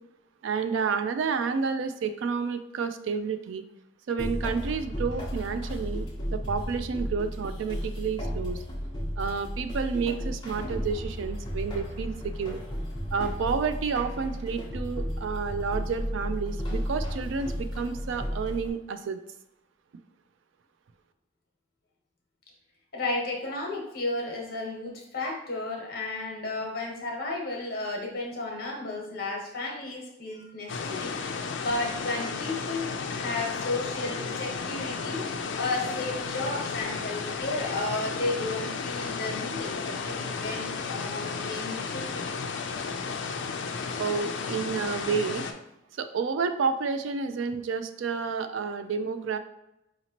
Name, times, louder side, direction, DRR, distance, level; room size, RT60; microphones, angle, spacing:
voice 1, 0.4-3.6 4.1-8.6 9.2-12.6 13.1-19.2 44.0-45.5 46.0-49.4, right 5 dB, 75° right, 9 dB, 0.3 m, -30 dB
sound 1, 4.2-18.7, equal, 20° left, 0.7 m, -33 dB
voice 2, 22.9-35.3 35.5-42.3, left 2 dB, 50° left, -1 dB, 1.0 m, -33 dB
sound 2, 30.7-45.5, left 5 dB, 65° left, 0.4 m, -33 dB
4.9 x 2.9 x 2.8 m, 0.86 s
head